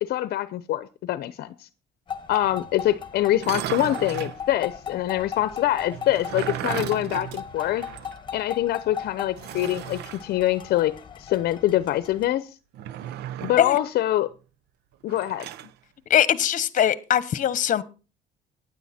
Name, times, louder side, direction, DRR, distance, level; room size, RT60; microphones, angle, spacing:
voice 1, 0.0-1.7 2.3-7.8 8.3-10.9 11.2-12.6 13.4-14.3 15.0-15.5, left 14 dB, 70° left, 15 dB, 0.8 m, -24 dB
sound 1, 2.1-12.3, left 7 dB, 30° left, 1.7 m, -38 dB
sound 2, 3.3-4.4 5.9-8.2 8.5-8.6 9.4-10.2 12.7-13.7 15.1-15.7, right 11 dB, 80° right, 0.8 m, -34 dB
voice 2, 16.1-17.8, left 10 dB, 50° left, 17 dB, 1.1 m, -21 dB
15.0 x 10.0 x 4.3 m, 0.33 s
cardioid pair, 110°, 17 cm